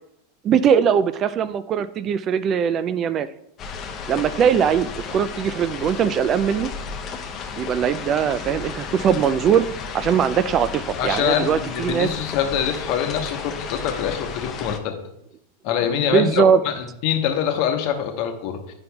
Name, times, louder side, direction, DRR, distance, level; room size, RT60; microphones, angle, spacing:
voice 1, 0.4-3.3 4.1-6.7 7.6-9.7 9.9-12.1 15.8-16.6, right 8 dB, 35° right, 14 dB, 0.3 m, -20 dB
sound 1, 3.6-14.8, left 5 dB, 35° left, 0.7 m, -33 dB
voice 2, 11.0-15.0 15.6-18.7, left 9 dB, 55° left, 5 dB, 1.0 m, -24 dB
9.7 x 5.2 x 2.3 m, 0.78 s
supercardioid pair, 125°, 0 cm